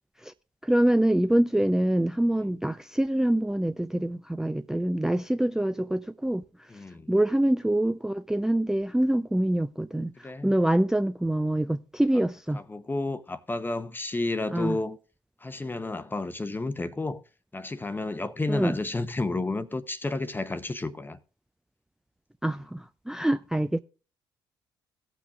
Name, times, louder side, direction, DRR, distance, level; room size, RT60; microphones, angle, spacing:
voice 1, 0.6-6.7 7.1-12.6 14.5-14.8 18.5-18.7 22.4-23.8, right 1 dB, 5° right, 0.5 m, -25 dB
voice 2, 6.7-7.1 10.2-10.5 12.5-15.0 15.4-17.2 17.5-21.2, left 2 dB, 20° left, 0.9 m, -31 dB
17.5 x 6.0 x 3.5 m
hypercardioid pair, 50°, 11 cm